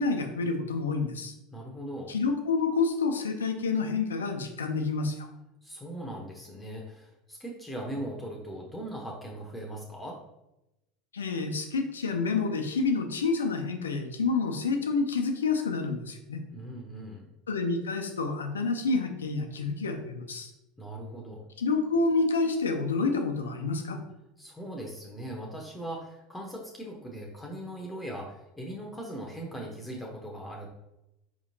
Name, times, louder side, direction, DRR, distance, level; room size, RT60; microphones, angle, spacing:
voice 1, 0.0-1.3 2.1-5.3 11.1-16.4 17.5-20.5 21.6-24.0, left 4 dB, 85° left, 5 dB, 0.5 m, -28 dB
voice 2, 1.5-2.1 5.6-10.2 16.5-17.3 20.8-21.4 24.4-30.7, right 1 dB, 10° left, 0 dB, 0.7 m, -39 dB
4.8 x 2.9 x 2.7 m, 0.91 s
hypercardioid pair, 80°, 0 cm